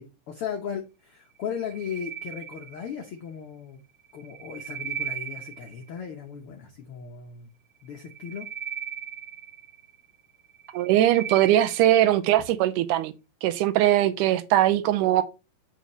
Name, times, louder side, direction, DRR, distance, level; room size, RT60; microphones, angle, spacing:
voice 1, 0.0-3.8 4.1-7.5 7.8-8.5, left 7 dB, 75° left, 1.2 m, -36 dB
sound 1, 1.4-3.1 4.1-5.9 7.9-10.0 10.5-12.0, right 9 dB, 30° left, 2.3 m, -37 dB
voice 2, 10.7-13.1 13.4-15.2, right 13 dB, 80° right, 2.1 m, -21 dB
7.1 x 5.6 x 3.0 m
omnidirectional pair, 3.8 m